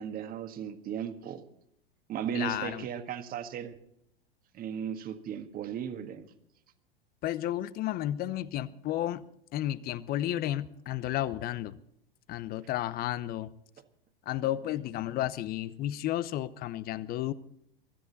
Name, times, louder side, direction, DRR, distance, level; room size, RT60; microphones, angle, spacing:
voice 1, 0.0-1.4 2.1-3.8 4.5-6.3, right 8 dB, 30° right, 1.7 m, -36 dB
voice 2, 2.3-2.9 7.2-9.2 9.5-11.8 12.3-13.5 14.3-17.3, left 13 dB, 30° left, 0.9 m, -32 dB
24.5 x 13.0 x 4.1 m
figure-of-eight pair, 95°, 29 cm